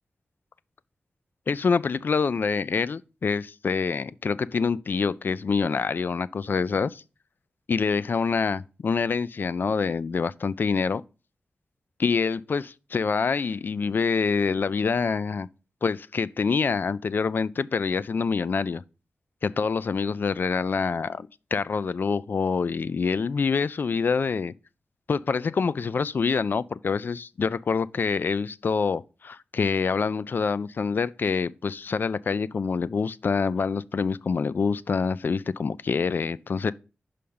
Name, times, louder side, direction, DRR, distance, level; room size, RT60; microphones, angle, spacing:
voice 1, 1.5-7.0 7.7-11.0 12.0-15.5 15.8-18.8 19.4-24.5 25.1-36.7, left 5 dB, 55° left, 0.3 m, -26 dB
5.7 x 5.0 x 5.4 m
cardioid pair, 70°, 4 cm